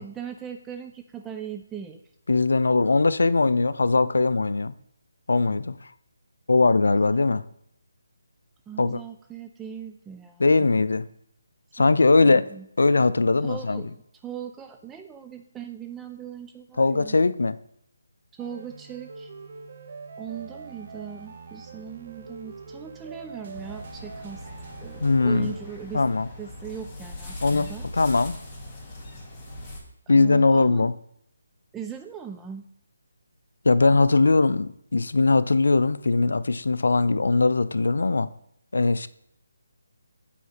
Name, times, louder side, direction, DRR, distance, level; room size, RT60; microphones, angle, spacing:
voice 1, 0.0-2.0 7.1-7.3 8.7-10.7 11.8-12.7 13.4-17.2 18.3-19.3 20.2-24.5 24.8-26.0 26.4-27.9 30.1-30.9 31.7-32.7, right 8 dB, 10° right, 0.3 m, -39 dB
voice 2, 2.3-4.7 5.3-5.8 6.5-7.4 8.8-9.0 10.4-11.0 11.7-12.4 12.8-13.8 16.8-17.6 25.0-25.5 25.9-26.3 27.4-27.7 28.0-28.4 30.1-30.9 33.6-38.3 38.7-39.1, left 3 dB, 75° left, 0.4 m, -20 dB
sound 1, 18.4-25.7, right 4 dB, 45° right, 1.0 m, -43 dB
sound 2, 23.5-29.8, left 1 dB, 15° left, 2.3 m, -40 dB
8.2 x 5.0 x 4.2 m
figure-of-eight pair, 155°, 0 cm